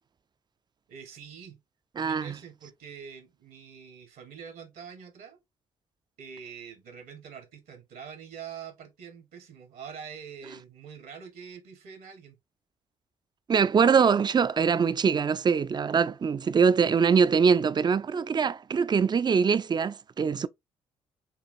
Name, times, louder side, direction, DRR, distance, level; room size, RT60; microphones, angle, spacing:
voice 1, 0.9-1.6 2.0-5.4 6.2-12.4, right 7 dB, 70° right, 1.2 m, -45 dB
voice 2, 2.0-2.3 13.5-20.5, right 6 dB, 30° right, 0.4 m, -23 dB
5.6 x 2.4 x 2.6 m
hypercardioid pair, 45°, 16 cm